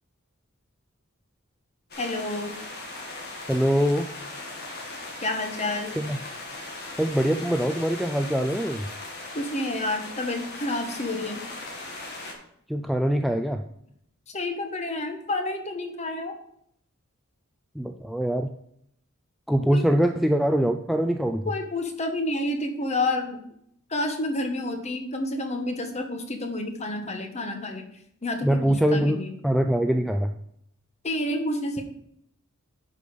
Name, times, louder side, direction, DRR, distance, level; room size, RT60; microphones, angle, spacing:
sound 1, 1.9-12.3, left 2 dB, 50° left, 2.1 m, -38 dB
voice 1, 2.0-2.5 5.2-6.0 9.3-11.4 14.3-16.4 19.7-19.9 21.5-23.4 23.9-27.8 28.2-29.4 31.0-31.8, left 2 dB, 30° left, 5 dB, 1.2 m, -29 dB
voice 2, 3.5-4.1 6.0-6.2 7.0-8.9 12.7-13.6 17.8-18.5 19.5-21.4 28.4-30.3, equal, ahead, 4 dB, 0.3 m, -23 dB
11.0 x 5.1 x 5.1 m, 0.71 s
head